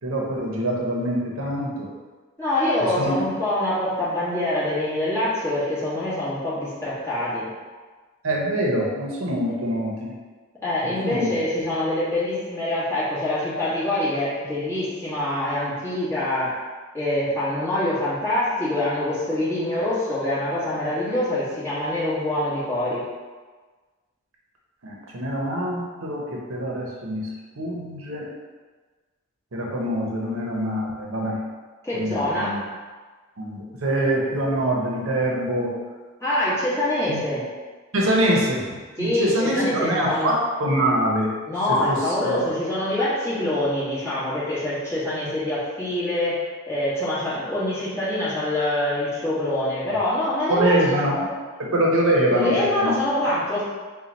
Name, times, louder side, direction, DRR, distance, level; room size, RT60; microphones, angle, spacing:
voice 1, 0.0-1.9 2.8-3.1 8.2-10.1 10.8-11.3 24.8-27.3 27.6-28.3 29.5-31.4 31.9-32.6 33.4-35.7 37.1-37.2 37.9-41.3 41.7-42.5 50.5-52.5 52.8-53.0 53.2-53.4, right 1 dB, 80° right, -2 dB, 0.8 m, -24 dB
voice 2, 2.4-7.5 10.6-16.6 16.9-23.0 31.8-32.6 36.2-37.5 39.0-40.3 41.5-46.4 46.7-50.8 52.3-53.6, left 1 dB, 15° left, -11 dB, 1.4 m, -25 dB
4.2 x 2.3 x 4.0 m, 1.4 s
head